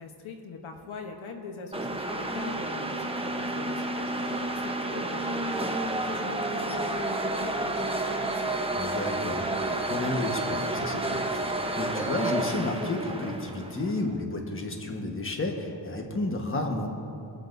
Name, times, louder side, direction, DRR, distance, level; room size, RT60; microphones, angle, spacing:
voice 1, 0.0-8.5, left 4 dB, 80° left, 4 dB, 1.1 m, -42 dB
sound 1, 1.7-14.0, right 2 dB, 10° right, 0.8 m, -30 dB
voice 2, 8.7-11.4 11.8-16.9, left 2 dB, 25° left, 2 dB, 1.3 m, -32 dB
23.5 x 7.9 x 2.7 m, 2.8 s
cardioid pair, 75°, 48 cm